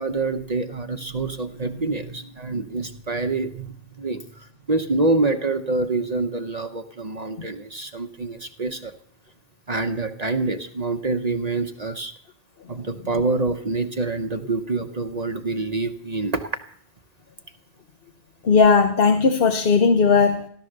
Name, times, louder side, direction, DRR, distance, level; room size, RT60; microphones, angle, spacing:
voice 1, 0.0-3.7 4.0-8.9 9.7-12.1 12.7-16.5, right 3 dB, 40° right, 7 dB, 1.0 m, -26 dB
voice 2, 18.4-20.5, left 5 dB, 60° left, 7 dB, 1.2 m, -17 dB
16.0 x 12.0 x 6.6 m, 0.63 s
omnidirectional pair, 1.1 m